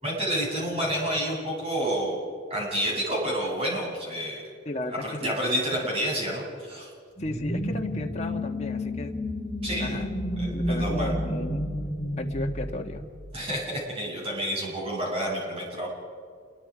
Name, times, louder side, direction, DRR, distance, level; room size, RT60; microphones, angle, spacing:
voice 1, 0.0-2.2 2.5-4.4 5.0-6.9 9.6-9.9 10.4-11.1 13.3-15.9, equal, 30° right, -3 dB, 7.7 m, -29 dB
voice 2, 4.6-5.3 7.2-9.2 9.8-10.1 10.5-11.6 12.2-13.0, left 1 dB, 35° left, 3 dB, 1.5 m, -34 dB
sound 1, 7.2-13.6, left 1 dB, 15° left, 5.1 m, -31 dB
28.0 x 22.5 x 5.1 m, 2.1 s
head